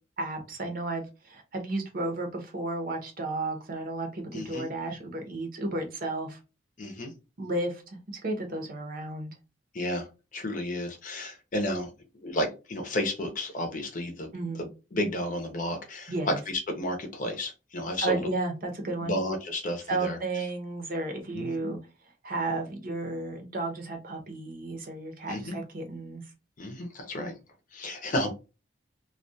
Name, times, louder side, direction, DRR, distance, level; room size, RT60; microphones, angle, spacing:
voice 1, 0.2-6.4 7.4-7.8 8.2-9.3 14.3-14.7 16.1-16.4 18.0-19.2 19.9-21.8 22.2-26.2, right 2 dB, 50° right, 3 dB, 0.8 m, -33 dB
voice 2, 4.3-4.7 6.8-7.1 9.7-10.1 10.3-11.9 12.2-14.6 14.9-16.1 16.5-18.2 19.0-20.2 21.3-21.7 25.3-25.6 26.6-27.3 27.7-28.3, left 1 dB, 45° left, 4 dB, 0.6 m, -32 dB
2.3 x 2.2 x 2.6 m, 0.29 s
head